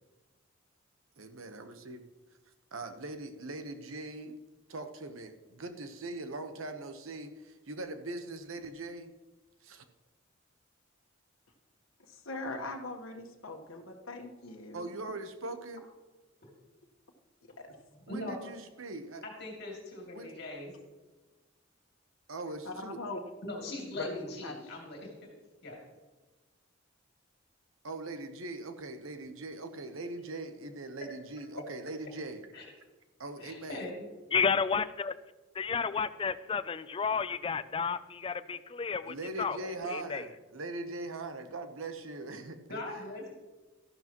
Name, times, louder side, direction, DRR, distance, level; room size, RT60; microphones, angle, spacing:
voice 1, 1.2-2.0 2.7-4.3 4.7-9.1 9.6-9.8 14.7-15.9 18.1-19.2 20.1-20.3 22.3-23.0 27.8-32.5 33.2-33.9 39.0-43.0, right 2 dB, 80° right, 8 dB, 1.0 m, -41 dB
voice 2, 12.0-14.9 17.6-17.7 22.6-23.2 23.9-24.5, left 2 dB, 85° left, 2 dB, 1.3 m, -41 dB
voice 3, 17.9-18.4 19.2-20.7 23.4-25.1 25.6-25.8 32.5-32.6 33.4-34.1 39.6-39.8 42.7-43.3, left 2 dB, 55° left, -1 dB, 2.6 m, -41 dB
voice 4, 34.3-35.1 35.5-39.6 39.9-40.2, left 5 dB, 25° left, 15 dB, 0.3 m, -31 dB
13.5 x 11.5 x 3.0 m, 1.2 s
head